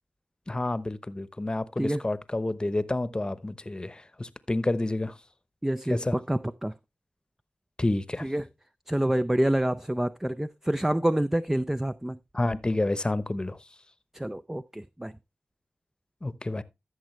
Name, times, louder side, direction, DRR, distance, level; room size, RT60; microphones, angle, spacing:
voice 1, 0.5-5.2 5.9-6.2 7.8-8.3 12.3-13.6 16.2-16.6, left 2 dB, 25° left, 0.9 m, -29 dB
voice 2, 5.6-6.7 8.2-8.5 8.9-12.2 14.1-15.1, right 1 dB, 10° right, 0.4 m, -27 dB
13.5 x 6.3 x 3.1 m
cardioid pair, 45°, 3 cm